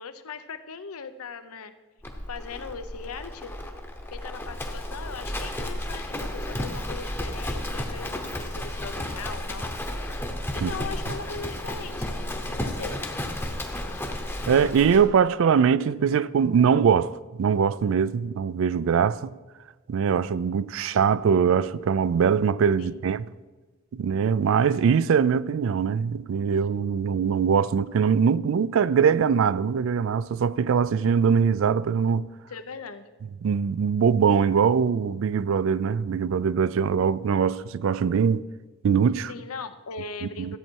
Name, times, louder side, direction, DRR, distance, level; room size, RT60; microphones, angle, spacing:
voice 1, 0.0-1.7 2.3-3.5 4.1-9.7 10.5-13.0 22.8-23.0 32.5-33.1 39.3-40.6, left 5 dB, 85° left, 0.7 m, -39 dB
Livestock farm animals working animals, 2.0-15.0, left 1 dB, 10° left, 0.8 m, -33 dB
voice 2, 14.5-19.3 19.9-23.2 23.9-32.3 33.4-38.4 38.8-39.3 40.2-40.5, right 6 dB, 65° right, 0.3 m, -22 dB
13.5 x 8.5 x 4.6 m
head